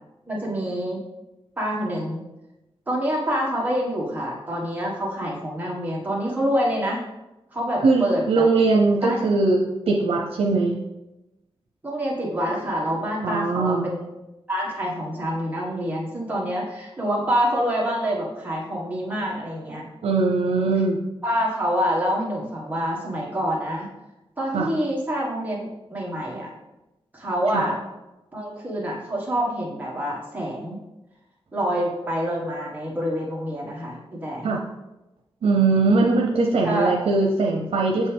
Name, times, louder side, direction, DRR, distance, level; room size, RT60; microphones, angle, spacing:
voice 1, 0.3-1.0 1.6-2.2 2.9-7.0 7.5-8.4 9.0-9.2 11.8-14.0 14.5-19.9 20.3-20.7 21.2-23.9 24.4-26.5 27.1-27.8 28.3-30.8 31.5-34.5 36.6-36.9, equal, 15° right, -4 dB, 1.7 m, -26 dB
voice 2, 7.8-10.8 13.2-13.9 20.0-21.0 24.5-24.7 27.5-27.6 34.4-34.6 35.4-38.1, right 3 dB, 85° right, 0 dB, 0.7 m, -21 dB
6.9 x 5.5 x 3.5 m, 1.0 s
wide cardioid pair, 140°, 10 cm